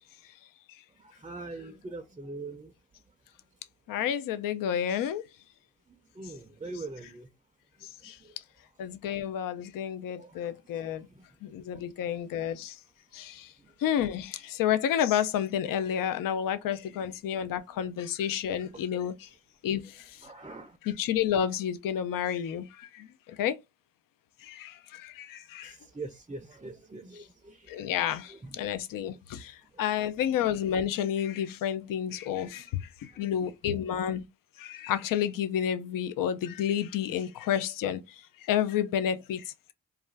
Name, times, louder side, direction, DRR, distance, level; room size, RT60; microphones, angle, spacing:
voice 1, 0.9-3.0 5.9-7.3 7.8-8.4 10.2-11.8 12.4-12.6 13.1-13.3 13.6-13.7 18.7-18.8 20.2-20.8 25.6-27.8 28.3-28.6 29.0-29.1 32.4-32.6 33.1-33.2, right 3 dB, 15° right, 0.5 m, -44 dB
voice 2, 3.9-5.2 8.8-11.0 11.5-12.7 13.2-13.3 13.8-14.3 14.6-19.1 19.6-19.8 20.9-22.7 23.4-23.5 24.6-24.7 25.5-25.7 27.7-28.3 28.6-29.4 29.8-32.6 33.2-34.2 34.7-38.0 38.5-39.4, left 9 dB, 65° left, 0.5 m, -29 dB
2.4 x 2.2 x 3.3 m
supercardioid pair, 45°, 35 cm